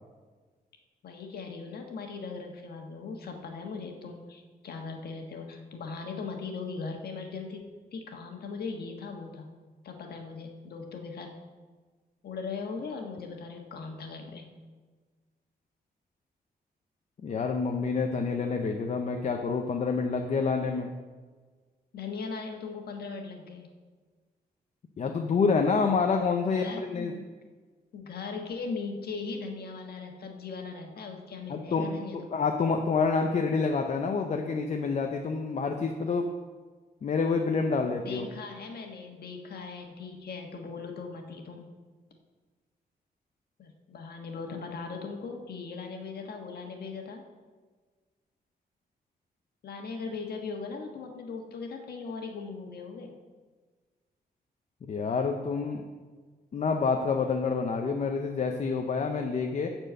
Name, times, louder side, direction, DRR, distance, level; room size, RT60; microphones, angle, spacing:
voice 1, 1.0-7.6 7.9-9.5 9.8-11.4 12.2-14.5 21.9-23.7 26.5-27.3 27.9-32.5 38.0-41.7 43.6-47.2 49.6-53.1, left 4 dB, 70° left, 3 dB, 1.4 m, -39 dB
voice 2, 17.2-20.9 25.0-27.1 31.5-36.3 37.0-38.3 54.9-55.8 56.5-59.7, left 4 dB, 45° left, 3 dB, 0.6 m, -28 dB
12.0 x 4.5 x 7.5 m, 1.4 s
wide cardioid pair, 180°, 17 cm